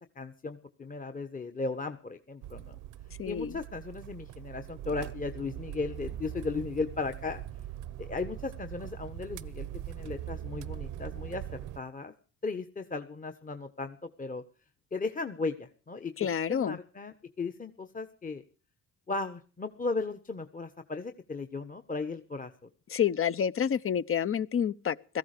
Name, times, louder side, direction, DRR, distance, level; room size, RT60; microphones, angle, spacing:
voice 1, 0.1-2.8 3.2-7.4 8.0-11.4 11.8-12.1 12.4-14.4 14.9-16.1 16.5-18.4 19.1-22.5, left 3 dB, 25° left, 1.3 m, -36 dB
sound 1, 2.4-11.8, right 12 dB, 90° right, 0.9 m, -41 dB
voice 2, 3.2-3.6 16.2-16.8 22.9-25.2, left 8 dB, 45° left, 0.9 m, -29 dB
17.5 x 14.5 x 5.1 m
cardioid pair, 90°, 30 cm